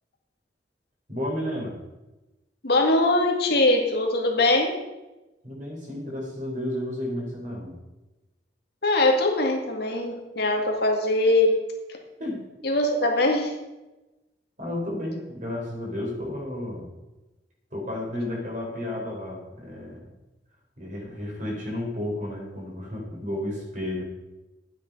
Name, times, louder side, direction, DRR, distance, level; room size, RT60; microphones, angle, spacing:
voice 1, 1.1-1.8 5.4-7.8 12.2-12.4 14.6-16.9 17.7-20.0 20.8-24.0, left 1 dB, 45° right, -1 dB, 4.1 m, -32 dB
voice 2, 2.6-4.8 8.8-11.6 12.6-13.5, left 2 dB, 60° left, 2 dB, 2.0 m, -22 dB
12.5 x 9.2 x 5.4 m, 1.1 s
head